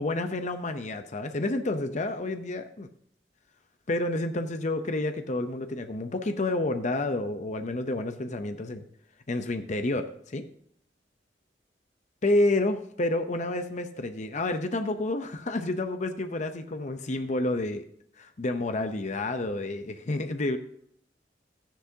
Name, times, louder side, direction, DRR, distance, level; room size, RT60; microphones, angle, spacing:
voice 1, 0.0-2.9 3.9-8.8 9.3-10.5 12.2-17.8 18.2-20.6, left 2 dB, 40° left, 8 dB, 0.7 m, -29 dB
13.5 x 10.0 x 2.8 m, 0.68 s
head